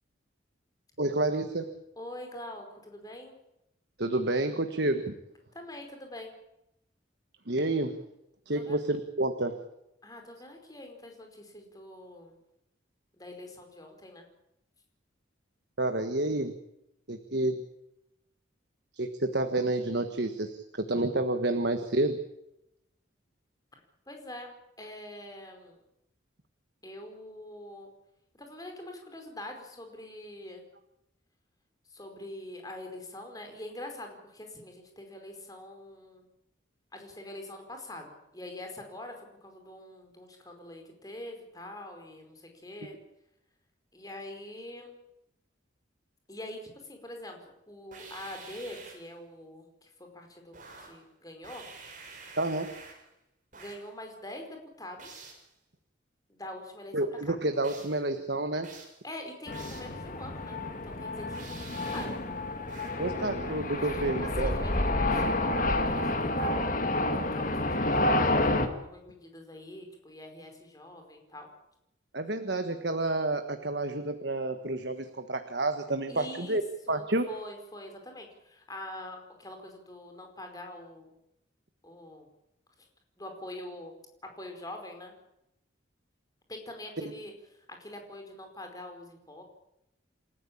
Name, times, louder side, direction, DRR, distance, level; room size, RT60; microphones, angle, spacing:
voice 1, 1.0-1.7 4.0-5.1 7.5-7.9 8.5-9.6 15.8-16.5 17.1-17.6 18.9-22.2 52.4-52.7 56.9-58.7 63.0-64.5 72.1-76.6 76.9-77.3 87.0-87.1, right 2 dB, 60° right, 8 dB, 1.5 m, -29 dB
voice 2, 2.0-3.4 5.5-6.3 8.5-8.8 10.0-12.4 13.1-14.2 24.1-25.8 26.8-27.9 28.3-30.6 31.9-36.2 36.9-43.0 43.9-44.9 46.3-51.7 53.5-55.2 56.3-57.0 57.3-57.4 59.0-62.6 62.9-63.1 63.8-64.1 64.4-67.0 67.3-71.5 76.1-76.6 76.9-81.1 81.8-82.3 82.8-82.9 83.2-84.0 84.4-85.1 86.5-89.4, left 1 dB, 20° left, 4 dB, 4.8 m, -44 dB
sound 1, 47.9-49.1 50.5-51.1 51.4-53.1 53.5-53.9 55.0-55.5 57.6-58.0 58.6-59.0 59.5-60.0 61.3-62.2 62.7-63.1, right 4 dB, 40° right, 5.9 m, -49 dB
sound 2, 59.5-68.7, left 1 dB, 40° left, 2.1 m, -29 dB
28.5 x 14.0 x 8.7 m, 0.83 s
head